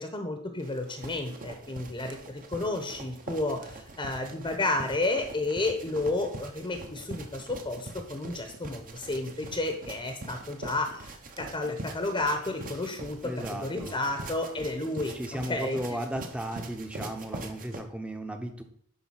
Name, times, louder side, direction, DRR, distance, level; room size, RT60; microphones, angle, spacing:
voice 1, 0.0-15.8, left 2 dB, 20° left, 5 dB, 0.9 m, -32 dB
sound 1, 0.6-17.8, right 2 dB, 40° right, 1.0 m, -43 dB
voice 2, 13.2-14.0 15.1-18.6, right 1 dB, 5° right, 6 dB, 0.9 m, -35 dB
10.5 x 3.9 x 5.7 m, 0.63 s
head